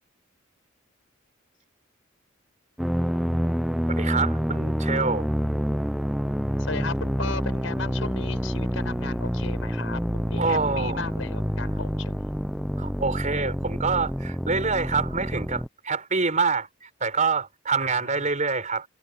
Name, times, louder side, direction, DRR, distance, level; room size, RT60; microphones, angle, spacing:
sound 1, 2.8-15.7, equal, ahead, 0.6 m, -27 dB
voice 1, 3.9-5.3 10.4-11.0 12.8-18.9, right 4 dB, 40° right, 4.1 m, -26 dB
voice 2, 6.6-12.3 17.8-18.3, left 3 dB, 80° left, 5.6 m, -36 dB
head